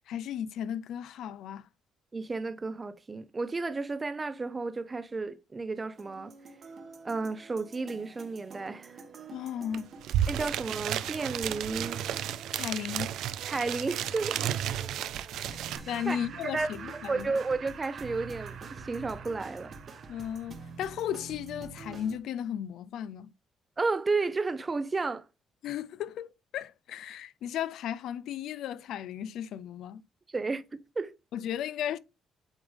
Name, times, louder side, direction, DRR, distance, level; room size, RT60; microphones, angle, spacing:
voice 1, 0.1-1.7 9.3-9.9 10.4-10.5 12.5-13.1 15.3-15.6 15.9-17.3 20.1-23.3 25.6-30.0 31.3-32.0, left 9 dB, 80° left, 0.4 m, -35 dB
voice 2, 2.1-6.3 7.0-8.9 10.3-12.0 13.5-14.5 15.5-15.6 16.0-16.2 16.4-16.7 17.1-19.7 23.8-25.2 30.3-31.1, right 3 dB, 25° right, 0.6 m, -32 dB
sound 1, 5.9-22.2, right 4 dB, 50° right, 1.2 m, -47 dB
sound 2, 9.7-9.8 10.0-15.8, right 11 dB, 85° right, 0.4 m, -32 dB
Laughter, 15.7-21.0, right 7 dB, 65° right, 1.0 m, -47 dB
8.1 x 3.4 x 3.6 m
cardioid pair, 90°, 0 cm